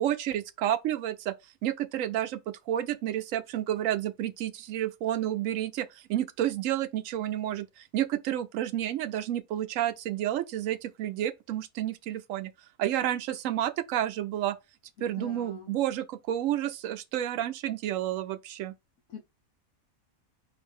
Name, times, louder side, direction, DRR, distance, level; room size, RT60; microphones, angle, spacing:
voice 1, 0.0-1.3 1.6-2.4 2.7-12.5 12.8-14.6 15.0-18.7, right 12 dB, 75° right, 0.9 m, -30 dB
voice 2, 15.0-15.7 19.1-19.2, left 6 dB, 70° left, 1.3 m, -44 dB
4.8 x 2.6 x 3.6 m
omnidirectional pair, 1.5 m